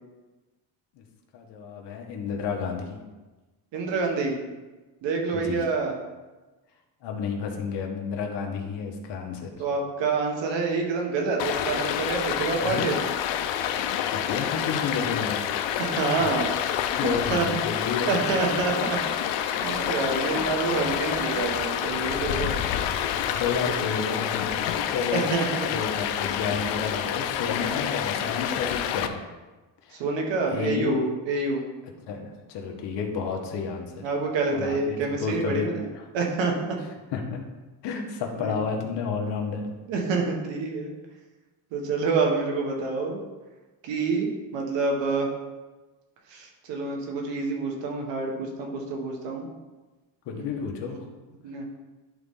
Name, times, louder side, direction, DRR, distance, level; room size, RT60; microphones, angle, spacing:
voice 1, 1.3-3.0 5.4-5.6 7.0-9.5 12.6-12.9 14.1-15.5 16.2-16.3 17.0-18.2 20.1-20.4 22.7-22.9 23.3-25.2 25.7-29.2 29.8-30.0 30.5-31.1 32.1-34.1 34.5-35.7 37.1-37.4 37.8-39.6 50.2-51.0, left 5 dB, 70° left, 2 dB, 1.4 m, -31 dB
voice 2, 3.7-4.4 5.0-5.9 9.6-13.0 15.8-16.6 17.0-17.5 18.1-22.6 23.6-23.7 25.1-25.7 29.9-31.0 31.2-31.6 34.0-35.9 36.1-36.8 38.4-38.6 39.9-40.9 41.7-43.2 43.8-45.3 46.3-49.5 50.3-50.7 51.4-51.7, right 4 dB, 80° right, 1 dB, 1.7 m, -27 dB
Stream, 11.4-29.1, left 10 dB, 85° left, 0.7 m, -28 dB
11.0 x 4.1 x 3.8 m, 1.2 s
cardioid pair, 130°, 43 cm